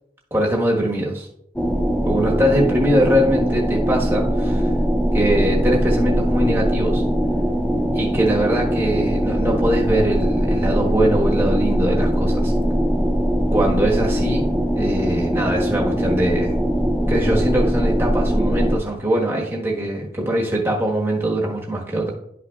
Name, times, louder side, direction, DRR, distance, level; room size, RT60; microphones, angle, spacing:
voice 1, 0.3-1.3 2.0-4.7 5.1-7.0 7.9-12.5 13.5-14.5 14.7-16.6 17.1-22.1, right 1 dB, 15° right, -2 dB, 1.3 m, -22 dB
sound 1, 1.6-18.8, equal, 5° left, 0.5 m, -21 dB
11.5 x 5.7 x 2.4 m, 0.73 s
head